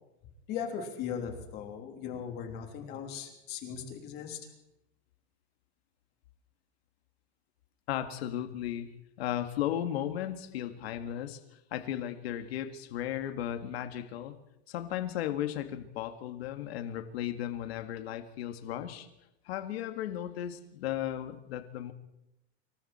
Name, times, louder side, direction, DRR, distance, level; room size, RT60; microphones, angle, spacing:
voice 1, 0.5-4.4, left 7 dB, 30° left, 3 dB, 3.3 m, -38 dB
voice 2, 7.9-8.9 9.2-11.4 11.7-14.4 14.7-19.1 19.4-21.9, left 11 dB, 60° left, 7 dB, 2.1 m, -35 dB
26.0 x 23.5 x 4.4 m, 0.88 s
supercardioid pair, 175°, 34 cm